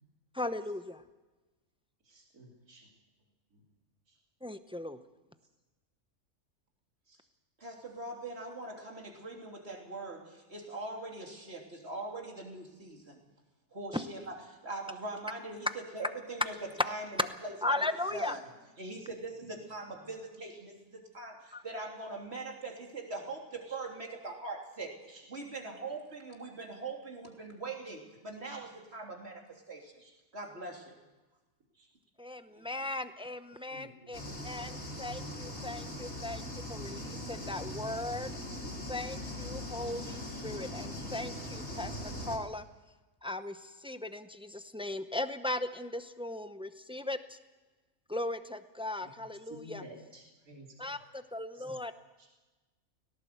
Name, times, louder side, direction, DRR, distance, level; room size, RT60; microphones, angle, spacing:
voice 1, 0.3-1.0 4.4-5.0 13.9-14.0 17.6-18.4 21.5-21.6 32.2-36.4 36.7-38.4 38.9-42.0 42.3-42.6 43.2-47.4 48.1-49.8 50.8-51.9, left 2 dB, 5° right, 10 dB, 0.4 m, -38 dB
voice 2, 2.0-2.9 4.1-4.2 7.1-7.2 18.8-18.9 23.7-23.8 25.1-25.2 28.4-28.6 30.0-30.1 31.7-31.9 33.7-34.4 49.0-49.1 49.5-51.0 51.5-51.6 52.2-52.3, equal, 80° right, -1 dB, 3.4 m, -52 dB
voice 3, 7.6-13.2 13.7-15.7 15.9-17.1 17.4-17.8 18.1-18.4 18.8-29.9 30.3-31.0 32.5-32.7, right 2 dB, 45° right, 1 dB, 3.5 m, -42 dB
sound 1, 34.1-42.4, left 1 dB, 60° left, 4.0 m, -40 dB
18.0 x 18.0 x 8.1 m, 1.2 s
omnidirectional pair, 1.5 m